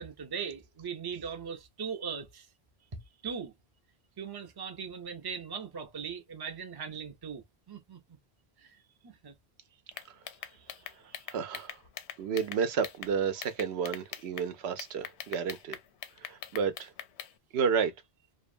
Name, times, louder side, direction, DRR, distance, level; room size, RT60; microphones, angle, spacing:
voice 1, 0.0-2.5 2.9-3.5 4.2-8.0 8.6-8.8 9.0-9.3, right 6 dB, 30° right, 0.5 m, -39 dB
sound 1, 9.9-13.1 13.4-14.5 14.8-17.3, left 9 dB, 85° left, 0.8 m, -42 dB
voice 2, 11.3-11.8 12.2-15.8 16.2-16.9 17.5-17.9, right 6 dB, 80° right, 0.9 m, -31 dB
2.6 x 2.3 x 2.4 m
omnidirectional pair, 1.1 m